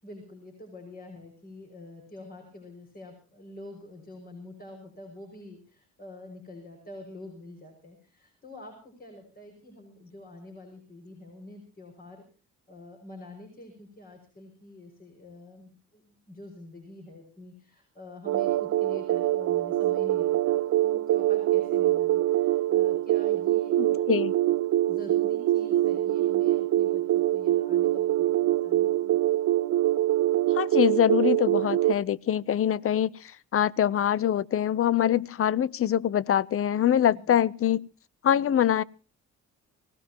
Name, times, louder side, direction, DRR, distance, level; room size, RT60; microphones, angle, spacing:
voice 1, 0.0-12.2 12.7-24.1 24.8-29.2 37.1-37.4, left 1 dB, 30° left, 6.0 m, -46 dB
sound 1, 18.3-31.9, right 14 dB, 65° right, 0.8 m, -24 dB
voice 2, 23.8-24.3 30.5-37.9 38.2-38.8, left 10 dB, 45° left, 0.7 m, -24 dB
24.0 x 17.5 x 3.0 m
cardioid pair, 90°, 30 cm